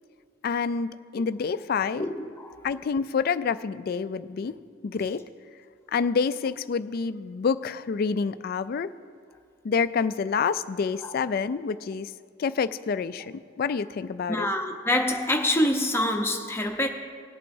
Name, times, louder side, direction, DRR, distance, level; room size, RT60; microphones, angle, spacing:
voice 1, 0.4-2.1 2.6-4.5 4.8-5.2 5.9-8.9 9.6-12.1 12.4-14.5, left 5 dB, 50° left, 0.3 m, -27 dB
voice 2, 2.0-2.5 11.0-11.1 14.3-16.9, left 1 dB, 10° left, 0.8 m, -26 dB
19.5 x 8.4 x 2.7 m
head